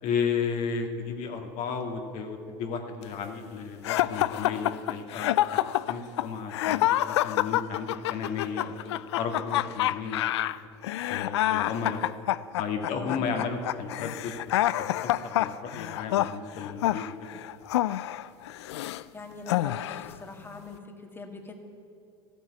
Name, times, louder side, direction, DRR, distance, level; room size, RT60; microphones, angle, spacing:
voice 1, 0.0-5.6 5.9-10.2 11.1-12.0 12.6-14.3 14.8-17.4, left 6 dB, 60° left, 3 dB, 1.9 m, -33 dB
sound 1, 3.8-19.0 19.5-20.1, left 14 dB, 85° left, 0.4 m, -27 dB
voice 2, 12.9-13.2 19.1-21.5, left 3 dB, 15° left, 3 dB, 1.8 m, -42 dB
13.5 x 9.0 x 9.4 m, 2.6 s
hypercardioid pair, 90°, 14 cm